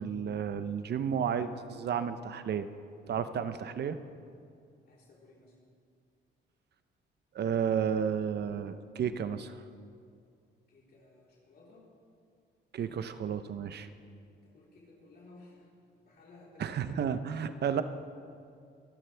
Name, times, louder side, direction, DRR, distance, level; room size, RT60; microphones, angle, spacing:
voice 1, 0.0-2.7 3.1-4.0 7.3-9.6 12.7-13.9 16.6-17.8, right 7 dB, 55° right, 11 dB, 0.8 m, -32 dB
voice 2, 4.8-5.6 10.7-11.9 14.4-16.8, left 2 dB, 50° left, -5 dB, 4.0 m, -57 dB
24.5 x 11.5 x 3.4 m, 2.3 s
cardioid pair, 90°, 20 cm